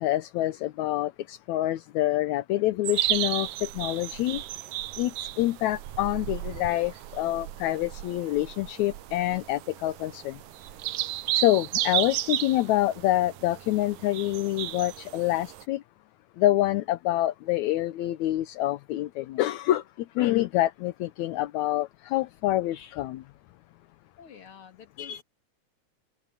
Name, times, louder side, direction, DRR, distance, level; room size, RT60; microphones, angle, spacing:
voice 1, 0.0-4.4 5.0-10.4 11.3-15.8 16.4-19.8 20.2-23.2 25.0-25.2, left 15 dB, 75° left, 2.1 m, -26 dB
sound 1, 2.8-15.6, right 15 dB, 90° right, 2.2 m, -33 dB
voice 2, 24.2-25.2, left 7 dB, 45° left, 3.4 m, -49 dB
omnidirectional pair, 3.4 m